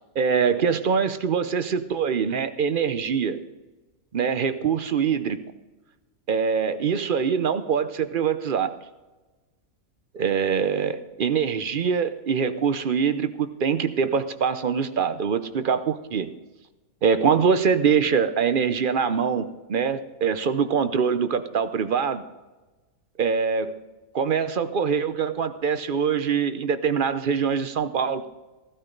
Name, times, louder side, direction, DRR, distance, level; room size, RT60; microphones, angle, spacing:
voice 1, 0.1-3.4 4.1-5.4 6.3-8.7 10.1-16.3 17.0-22.2 23.2-23.8 24.1-28.3, right 6 dB, 50° right, 11 dB, 0.6 m, -24 dB
16.5 x 13.0 x 3.9 m, 1.2 s
omnidirectional pair, 1.6 m